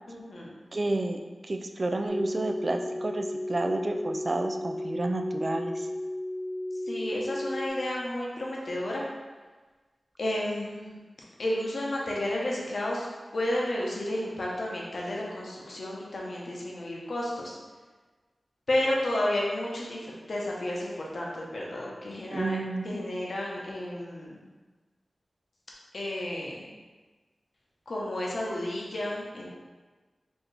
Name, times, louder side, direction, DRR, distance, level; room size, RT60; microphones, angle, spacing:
voice 1, 0.1-0.5 6.9-9.0 10.2-11.0 11.4-13.1 13.3-17.6 18.7-22.6 22.8-24.4 25.9-26.7 27.9-29.6, left 1 dB, 65° left, -3 dB, 0.9 m, -32 dB
voice 2, 0.7-5.9 22.3-22.8, right 2 dB, 40° right, 4 dB, 0.3 m, -30 dB
sound 1, 2.1-7.7, left 1 dB, 15° left, 1.1 m, -34 dB
4.4 x 2.8 x 3.3 m, 1.3 s
wide cardioid pair, 100°, 0 cm